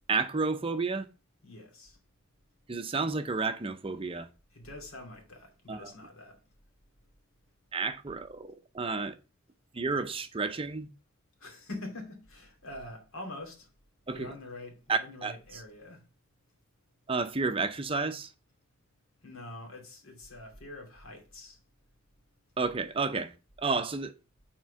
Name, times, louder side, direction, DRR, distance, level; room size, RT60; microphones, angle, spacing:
voice 1, 0.1-1.1 2.7-4.3 5.7-5.9 7.7-9.1 9.7-10.9 14.1-14.3 14.9-15.6 17.1-18.3 22.6-23.3 23.6-24.1, right 4 dB, 25° right, 0.6 m, -31 dB
voice 2, 1.4-2.0 4.5-6.4 11.4-13.7 14.1-16.0 19.2-21.6, left 2 dB, 80° left, 2.5 m, -45 dB
6.1 x 4.4 x 5.6 m
head